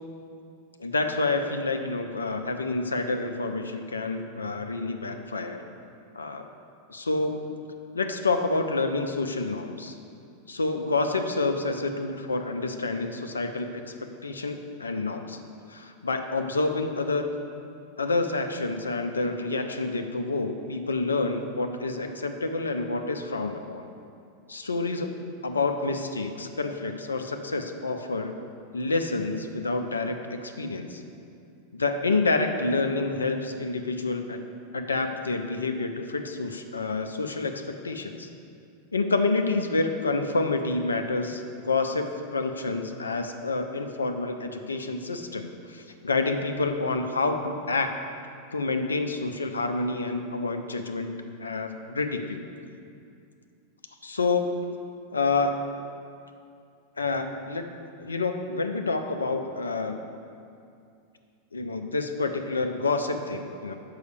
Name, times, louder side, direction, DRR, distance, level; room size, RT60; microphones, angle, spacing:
voice 1, 0.8-5.6 6.1-6.5 6.9-7.5 7.9-10.0 10.5-13.9 14.2-15.4 15.7-17.3 18.0-23.9 24.5-25.2 25.4-28.3 28.7-31.0 31.7-34.4 34.7-38.3 38.9-47.9 48.5-51.1 51.4-52.4 54.0-54.8 55.1-55.6 57.0-57.7 58.0-60.0 61.5-63.8, left 3 dB, 75° left, 6 dB, 0.6 m, -28 dB
6.5 x 5.6 x 6.8 m, 2.5 s
figure-of-eight pair, 90°, 0 cm